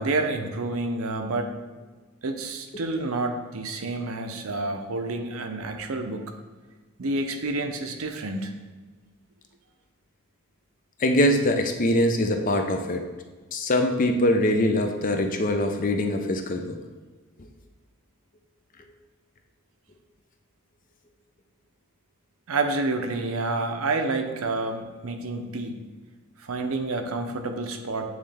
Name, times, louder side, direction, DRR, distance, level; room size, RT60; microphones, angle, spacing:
voice 1, 0.0-1.5 2.2-6.3 7.0-8.5 22.5-25.8 26.4-28.0, right 2 dB, 80° right, 5 dB, 0.6 m, -29 dB
voice 2, 11.0-13.1 13.5-16.8, left 1 dB, 40° left, 5 dB, 0.5 m, -23 dB
8.7 x 3.2 x 3.4 m, 1.4 s
head